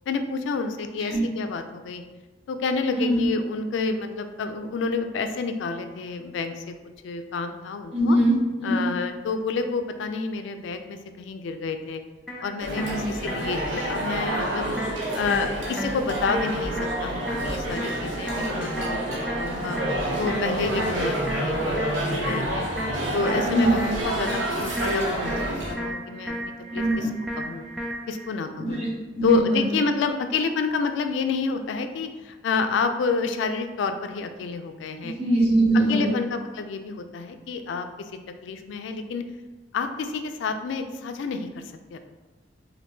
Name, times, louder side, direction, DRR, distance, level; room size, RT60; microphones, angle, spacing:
voice 1, 0.1-2.0 2.5-6.7 7.0-8.2 8.6-12.0 12.4-14.7 15.1-19.8 20.2-22.7 23.1-27.1 27.4-27.6 28.1-28.8 29.2-35.1 35.9-38.1 38.4-39.2 39.7-42.0, left 4 dB, 80° left, 7 dB, 0.3 m, -29 dB
voice 2, 2.9-3.3 7.9-8.3 8.6-8.9 12.7-13.0 18.3-18.5 18.7-18.8 23.4-23.8 26.7-27.1 28.6-28.9 29.1-29.7 35.0-36.1, right 1 dB, 35° right, -5 dB, 0.9 m, -22 dB
sound 1, 12.3-28.3, equal, ahead, 0.4 m, -35 dB
sound 2, 12.6-25.7, right 1 dB, 85° right, 0.6 m, -28 dB
2.6 x 2.6 x 3.5 m, 1.2 s
head